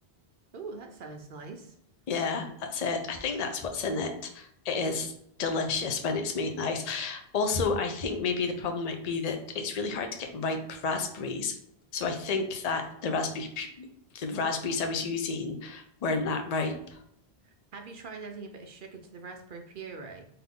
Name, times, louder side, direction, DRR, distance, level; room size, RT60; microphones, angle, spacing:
voice 1, 0.5-1.7 17.4-20.3, right 4 dB, 60° right, 4 dB, 0.7 m, -43 dB
voice 2, 2.1-5.1 5.4-11.5 11.9-13.9 14.1-17.0, left 4 dB, 45° left, 5 dB, 0.6 m, -31 dB
3.9 x 2.8 x 3.6 m, 0.70 s
omnidirectional pair, 1.1 m